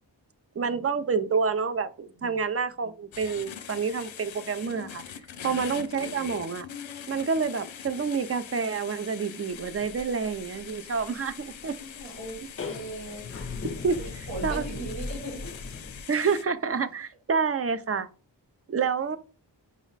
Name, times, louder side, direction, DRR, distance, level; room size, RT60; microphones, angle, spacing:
voice 1, 0.6-5.0 5.4-6.7 7.1-11.7 13.6-14.0 14.4-14.7 16.1-18.1 18.7-19.2, right 5 dB, 35° right, 0.4 m, -28 dB
sound 1, 3.1-16.4, left 8 dB, 90° left, 0.5 m, -43 dB
sound 2, 9.5-16.0, left 3 dB, 30° left, 0.5 m, -38 dB
voice 2, 11.8-13.2 14.3-15.5, right 2 dB, 80° right, 1.9 m, -38 dB
5.1 x 2.1 x 3.9 m
wide cardioid pair, 60°, 44 cm